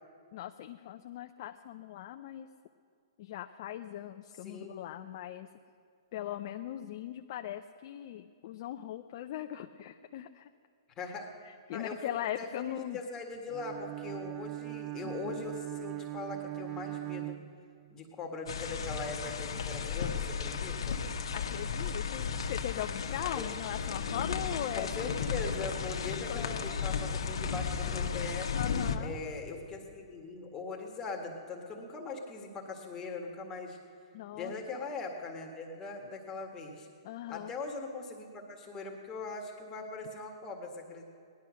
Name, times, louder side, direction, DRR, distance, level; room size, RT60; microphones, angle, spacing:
voice 1, 0.3-2.5 3.2-5.5 6.1-10.5 11.4-13.0 15.0-15.4 21.3-25.1 26.0-26.6 28.5-29.2 34.1-34.5 37.0-37.5, left 12 dB, 50° left, 5 dB, 0.6 m, -40 dB
voice 2, 11.0-11.3 11.7-12.0 12.4-17.4 17.9-21.0 23.4-23.5 24.8-28.5 29.0-33.8 34.3-36.9 37.3-41.0, left 3 dB, 20° left, 1 dB, 1.8 m, -41 dB
Bowed string instrument, 13.5-18.1, right 18 dB, 25° right, 0.3 m, -40 dB
sound 1, 18.5-29.0, left 6 dB, 75° left, 1.2 m, -34 dB
18.0 x 11.5 x 6.4 m, 2.3 s
hypercardioid pair, 140°, 3 cm